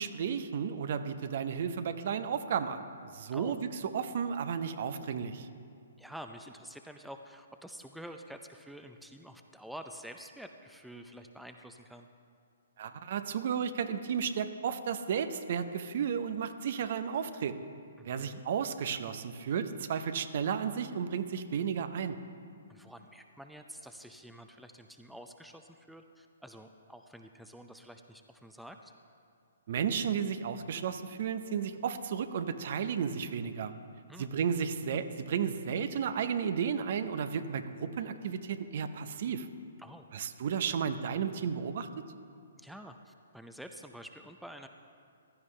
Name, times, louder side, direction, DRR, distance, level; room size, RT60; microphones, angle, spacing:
voice 1, 0.0-2.9 3.1-3.6 3.9-5.5 12.8-17.6 18.0-22.2 29.7-33.7 34.2-39.5 40.1-41.9, right 7 dB, 55° right, 10 dB, 0.7 m, -33 dB
voice 2, 6.0-12.1 18.0-18.4 22.7-28.9 34.1-34.3 39.8-40.1 42.6-44.7, equal, ahead, 5 dB, 0.5 m, -48 dB
15.5 x 12.5 x 3.3 m, 2.4 s
figure-of-eight pair, 130°, 0 cm